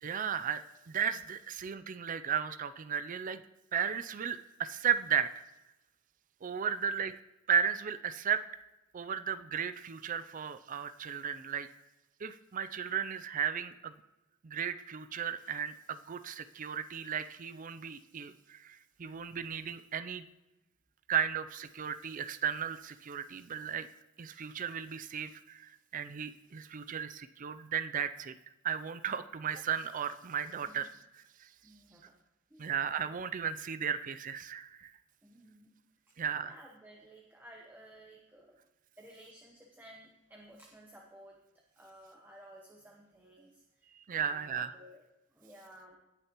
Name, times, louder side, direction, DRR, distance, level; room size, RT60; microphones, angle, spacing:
voice 1, 0.0-3.4 3.7-5.3 6.4-7.1 7.5-8.4 8.9-11.7 12.2-13.9 14.4-20.2 21.1-23.9 24.2-28.3 28.6-30.9 31.4-31.5 32.6-34.9 36.2-36.5 44.1-44.8, right 7 dB, 40° right, 12 dB, 0.4 m, -35 dB
voice 2, 31.6-32.2 32.5-32.7 35.2-35.7 36.4-38.6 39.0-41.4 41.7-43.6 44.1-45.0 45.3-46.0, right 1 dB, 10° right, -1 dB, 1.0 m, -55 dB
17.5 x 6.5 x 3.0 m, 0.99 s
head